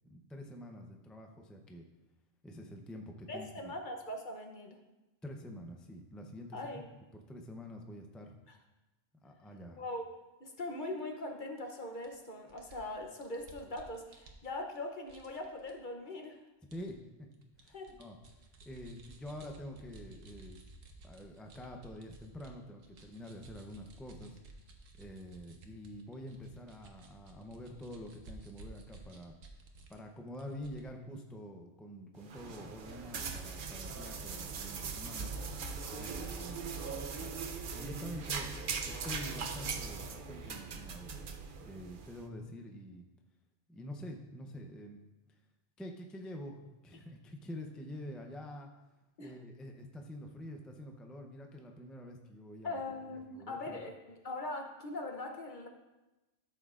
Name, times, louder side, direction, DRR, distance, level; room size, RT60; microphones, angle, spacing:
voice 1, 0.1-1.8 2.4-3.7 5.2-6.8 7.1-8.4 9.2-9.8 16.7-17.3 17.6-18.2 18.7-20.6 21.0-24.4 25.0-29.3 29.9-35.3 35.9-36.7 37.2-37.4 37.7-41.1 41.6-43.1 43.7-45.0 45.8-48.7 49.2-52.8 53.1-53.8, left 1 dB, ahead, 2 dB, 0.4 m, -47 dB
voice 2, 3.3-4.8 6.5-6.9 8.5-8.6 9.8-10.0 10.4-16.4 17.7-18.0 35.9-36.3 49.2-49.3 52.6-55.7, left 2 dB, 45° left, 3 dB, 0.8 m, -41 dB
sound 1, 12.0-12.1 12.5-14.8 15.1-15.7 16.7-16.9 17.3-22.5 22.8-30.0 30.3-30.9, right 2 dB, 90° right, 1.3 m, -55 dB
sound 2, 32.2-42.2, right 5 dB, 55° right, 0.7 m, -40 dB
13.0 x 7.2 x 2.5 m, 1.1 s
omnidirectional pair, 1.3 m